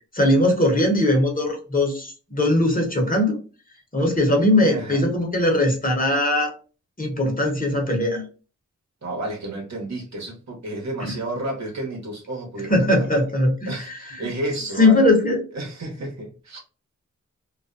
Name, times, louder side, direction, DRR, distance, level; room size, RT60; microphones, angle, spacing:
voice 1, 0.1-3.4 3.9-6.5 7.0-8.2 11.0-11.1 12.7-14.3 14.8-15.4, left 1 dB, 25° left, 0 dB, 0.9 m, -20 dB
voice 2, 4.5-5.0 9.0-13.1 13.7-15.1 15.5-16.6, right 2 dB, 60° right, -1 dB, 1.0 m, -31 dB
2.4 x 2.1 x 2.5 m, 0.36 s
cardioid pair, 70°, 31 cm